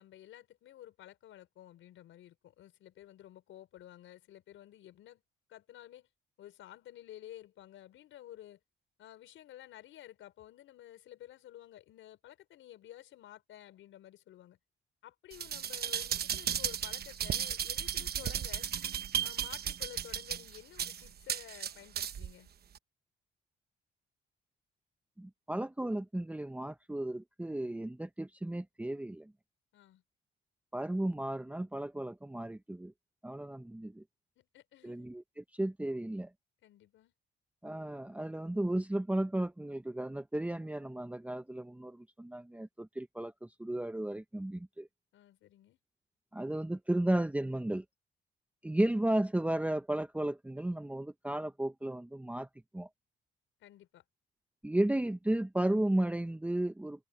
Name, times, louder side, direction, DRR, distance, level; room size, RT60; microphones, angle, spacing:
voice 1, 0.0-5.2 5.5-6.1 6.4-8.6 9.0-14.6 15.0-18.7 19.2-22.5 29.7-30.0 34.4-35.1 36.6-37.1 45.1-45.8 53.6-54.0, left 12 dB, 80° left, 5.6 m, -52 dB
sound 1, 15.3-22.3 22.8-22.9, right 9 dB, 55° right, 1.0 m, -35 dB
voice 2, 25.2-29.3 30.7-32.9 33.2-34.0 34.8-36.3 37.6-44.9 46.3-47.8 48.6-52.5 52.7-52.9 54.6-57.1, right 1 dB, 5° right, 0.9 m, -34 dB
cardioid pair, 90°, 20 cm